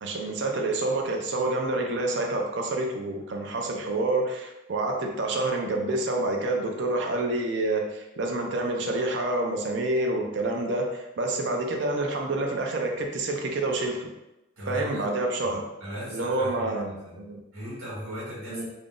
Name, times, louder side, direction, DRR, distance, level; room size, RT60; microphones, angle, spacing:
voice 1, 0.0-14.1 14.7-15.6 16.1-17.4 18.5-18.7, right 2 dB, 55° right, 2 dB, 0.4 m, -28 dB
voice 2, 14.6-15.1 15.4-16.8 17.1-17.2 17.5-18.7, equal, 85° right, -7 dB, 1.0 m, -37 dB
2.4 x 2.0 x 3.6 m, 0.96 s
head